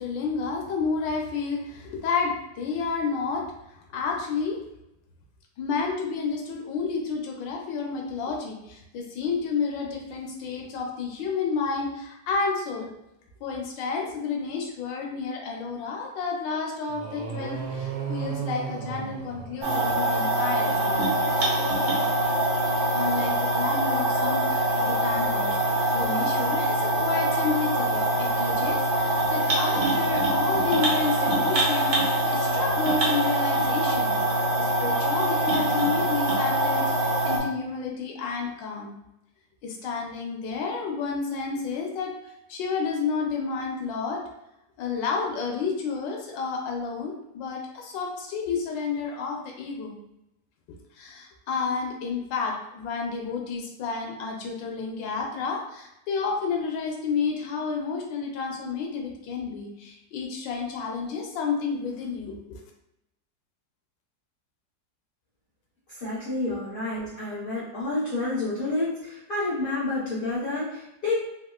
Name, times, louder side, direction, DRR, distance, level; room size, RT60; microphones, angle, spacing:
voice 1, 0.0-3.5 3.7-4.6 5.6-12.9 13.4-21.6 22.9-25.6 25.9-34.2 34.6-39.0 39.6-44.2 44.8-50.0 50.9-62.6, left 5 dB, 80° left, 0 dB, 1.3 m, -31 dB
sound 1, 16.9-20.2, right 7 dB, 85° right, 1.4 m, -34 dB
sound 2, 19.6-37.4, right 1 dB, 65° right, 1.3 m, -24 dB
voice 2, 66.0-71.1, left 2 dB, 50° left, -8 dB, 0.6 m, -29 dB
3.5 x 2.4 x 2.3 m, 0.86 s
omnidirectional pair, 2.0 m